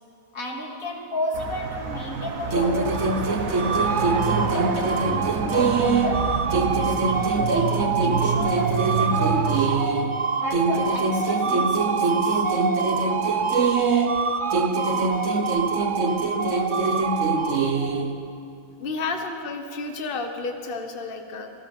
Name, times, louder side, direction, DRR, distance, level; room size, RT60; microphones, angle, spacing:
voice 1, 0.3-9.9 10.3-12.5, left 1 dB, 85° left, 0 dB, 2.9 m, -33 dB
sound 1, 1.3-9.7, right 5 dB, 85° right, 1.9 m, -29 dB
sound 2, 2.5-6.2 6.5-10.1 10.5-14.2 14.5-18.1, right 3 dB, 65° right, 1.6 m, -25 dB
sound 3, 2.8-18.1, right 5 dB, 40° right, 1.0 m, -27 dB
voice 2, 18.8-21.5, left 3 dB, 45° left, 5 dB, 1.4 m, -31 dB
26.5 x 18.5 x 5.5 m, 2.6 s
omnidirectional pair, 1.4 m